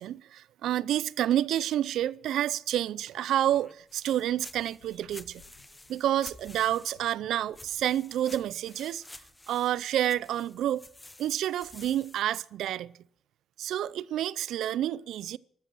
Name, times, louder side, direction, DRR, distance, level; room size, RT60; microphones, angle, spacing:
voice 1, 0.0-5.4 5.9-9.0 9.5-10.8 11.2-12.9 13.6-15.4, right 12 dB, 80° right, 0.5 m, -29 dB
sound 1, 3.4-7.2 7.5-12.2, left 2 dB, 15° left, 0.9 m, -50 dB
sound 2, 3.8-8.1, left 6 dB, 80° left, 2.2 m, -61 dB
14.0 x 13.0 x 6.1 m
cardioid pair, 90°, 0 cm